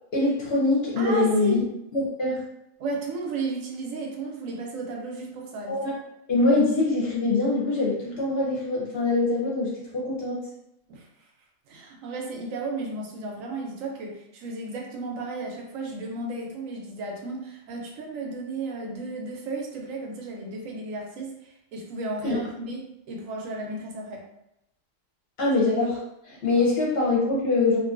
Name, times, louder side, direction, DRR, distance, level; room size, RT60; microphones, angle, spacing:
voice 1, 0.1-1.6 1.9-2.4 5.7-5.9 6.3-10.4 22.2-22.4 25.4-26.0 26.2-27.8, left 2 dB, 60° left, -4 dB, 0.7 m, -23 dB
voice 2, 1.0-1.6 2.8-5.8 10.9-11.3 11.7-24.2, right 3 dB, 80° right, 0 dB, 1.0 m, -34 dB
2.5 x 2.2 x 2.4 m, 0.83 s
omnidirectional pair, 1.4 m